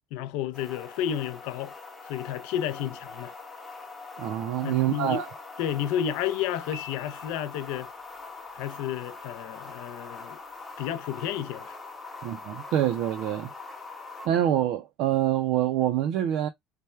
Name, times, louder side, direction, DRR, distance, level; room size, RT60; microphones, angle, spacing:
voice 1, 0.1-1.7 2.0-3.3 4.6-5.2 5.6-7.9 8.5-10.4 10.8-11.7, left 10 dB, 65° left, 0.4 m, -31 dB
sound 1, 0.5-14.3, left 3 dB, 10° left, 0.7 m, -43 dB
voice 2, 4.2-5.3 12.2-13.5 14.2-16.5, right 11 dB, 50° right, 0.4 m, -26 dB
Piano, 6.7-7.8, left 8 dB, 85° right, 1.0 m, -45 dB
3.3 x 2.1 x 4.3 m
cardioid pair, 180°, 0 cm